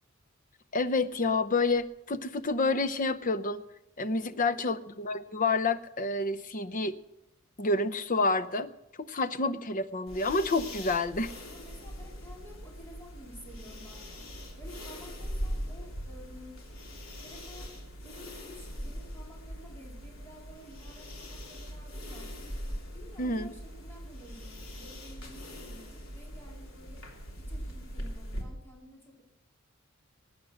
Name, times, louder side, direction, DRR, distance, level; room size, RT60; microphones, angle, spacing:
voice 1, 0.7-3.6 4.0-6.9 7.6-8.7 9.1-11.3 23.2-23.5, left 3 dB, 40° left, 13 dB, 0.7 m, -29 dB
voice 2, 4.2-4.8 11.5-16.6 17.2-17.7 18.0-22.3 22.9-27.0 27.4-29.2, equal, 10° left, -3 dB, 3.8 m, -52 dB
sound 1, 10.1-28.4, equal, 75° left, 3.1 m, -41 dB
20.5 x 9.1 x 6.3 m, 0.89 s
head